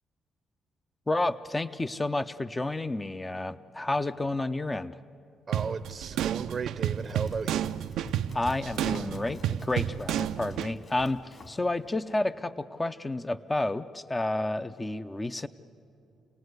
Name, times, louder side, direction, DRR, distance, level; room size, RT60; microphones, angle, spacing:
voice 1, 1.1-5.0 8.3-15.5, left 2 dB, 15° left, 13 dB, 0.6 m, -30 dB
voice 2, 5.5-7.8, right 5 dB, 40° right, 10 dB, 0.7 m, -35 dB
sound 1, 5.5-10.7, right 11 dB, 85° right, 0.5 m, -31 dB
Run, 7.0-11.7, left 2 dB, 40° left, 2.8 m, -46 dB
28.5 x 18.5 x 8.0 m, 2.5 s
cardioid pair, 90°, 0 cm